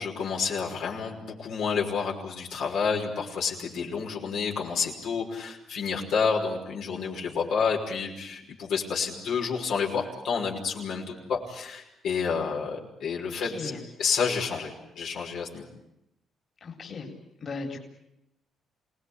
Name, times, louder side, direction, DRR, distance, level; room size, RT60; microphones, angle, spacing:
voice 1, 0.0-13.7 14.0-15.7, left 5 dB, 80° left, -1 dB, 5.6 m, -29 dB
voice 2, 13.4-13.8 16.6-17.1 17.4-17.8, left 4 dB, 45° left, 1 dB, 4.2 m, -36 dB
27.5 x 19.0 x 9.9 m, 0.84 s
cardioid pair, 90°, 0 cm